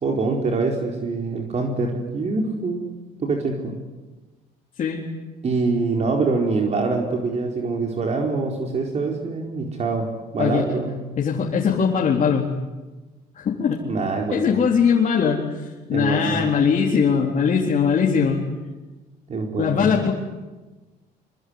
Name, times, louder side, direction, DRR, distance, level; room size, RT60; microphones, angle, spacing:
voice 1, 0.0-3.7 5.4-11.0 13.8-14.5 15.9-16.4 19.3-20.0, right 3 dB, 40° right, 1 dB, 4.5 m, -25 dB
voice 2, 11.2-12.5 13.4-13.8 14.3-18.4 19.6-20.1, left 6 dB, 50° left, -2 dB, 3.8 m, -20 dB
25.5 x 24.0 x 9.8 m, 1.2 s
cardioid pair, 110°, 17 cm